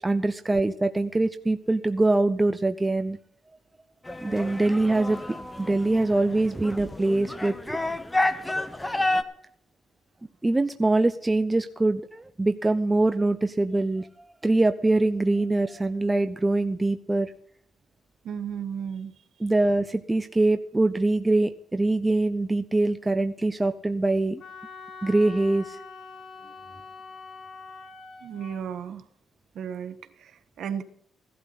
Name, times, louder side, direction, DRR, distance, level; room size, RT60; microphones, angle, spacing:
voice 1, 0.0-3.2 4.2-7.8 10.4-17.3 19.4-24.4 25.0-25.8, right 2 dB, 15° right, 9 dB, 0.7 m, -24 dB
sound 1, 4.1-9.2, left 2 dB, 15° left, 1.2 m, -30 dB
voice 2, 18.2-19.1 28.2-29.0 29.5-30.8, right 7 dB, 70° right, 9 dB, 1.4 m, -34 dB
Wind instrument woodwind instrument, 24.4-28.6, left 5 dB, 60° left, 2.7 m, -44 dB
16.5 x 12.0 x 4.1 m, 0.63 s
cardioid pair, 90°, 0 cm